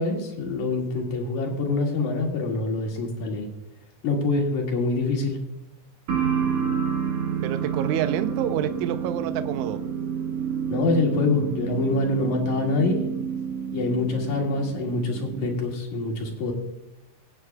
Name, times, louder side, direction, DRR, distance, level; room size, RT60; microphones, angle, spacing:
voice 1, 0.0-3.5 4.0-5.4 10.7-13.0 13.7-16.5, left 3 dB, 60° left, 1 dB, 3.3 m, -25 dB
sound 1, 6.1-15.6, right 7 dB, 60° right, 2.0 m, -29 dB
voice 2, 7.4-9.8, right 10 dB, 75° right, 10 dB, 2.0 m, -28 dB
22.0 x 9.2 x 2.3 m, 0.86 s
omnidirectional pair, 3.9 m